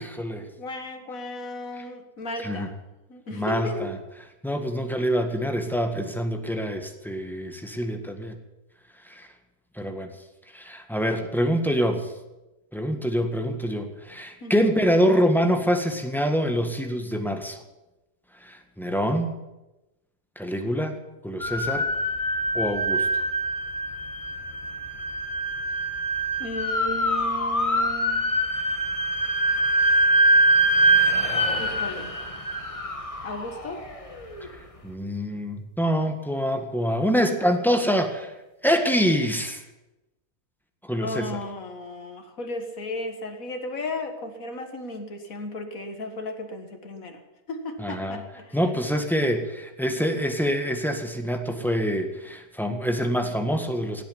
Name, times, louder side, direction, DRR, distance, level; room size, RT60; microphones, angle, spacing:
voice 1, 0.0-0.5 2.4-2.7 3.3-3.9 4.4-8.4 9.1-9.3 9.8-10.1 10.5-12.1 12.7-17.6 18.4-19.3 20.3-21.0 21.2-21.9 22.5-23.1 34.4-34.5 34.8-38.3 38.6-39.6 40.9-41.3 47.8-48.2 48.5-54.0, equal, ahead, 5 dB, 1.6 m, -25 dB
voice 2, 0.6-2.7 3.1-4.0 14.4-14.7 26.4-28.4 31.6-32.1 33.2-33.8 41.0-47.2 47.5-48.6 49.8-50.0, left 2 dB, 70° left, 6 dB, 2.2 m, -35 dB
sound 1, 21.4-34.5, right 1 dB, 25° left, 1.6 m, -24 dB
17.0 x 8.4 x 9.8 m, 1.0 s
omnidirectional pair, 1.5 m